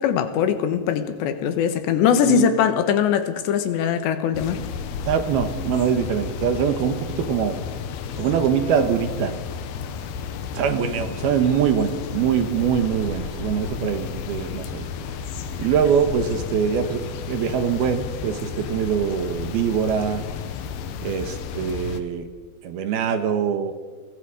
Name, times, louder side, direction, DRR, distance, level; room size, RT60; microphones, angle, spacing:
voice 1, 0.0-4.6, left 8 dB, 85° left, 3.6 m, -21 dB
sound 1, 4.3-22.0, left 6 dB, 70° left, 2.8 m, -32 dB
voice 2, 5.1-7.6 8.2-9.3 10.5-14.9 15.6-20.2 21.0-22.3 22.6-23.7, right 7 dB, 70° right, 3.0 m, -23 dB
30.0 x 22.5 x 5.0 m
omnidirectional pair, 5.0 m